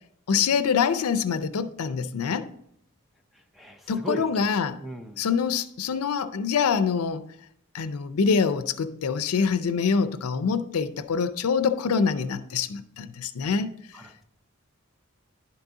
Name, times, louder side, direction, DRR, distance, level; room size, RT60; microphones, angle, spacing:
voice 1, 0.3-2.5 3.9-4.8 5.2-7.2 7.7-13.7, left 6 dB, 85° left, 0.5 m, -25 dB
voice 2, 3.3-4.3 4.8-5.2 13.9-14.2, right 2 dB, ahead, 0.5 m, -37 dB
10.5 x 3.9 x 3.6 m
head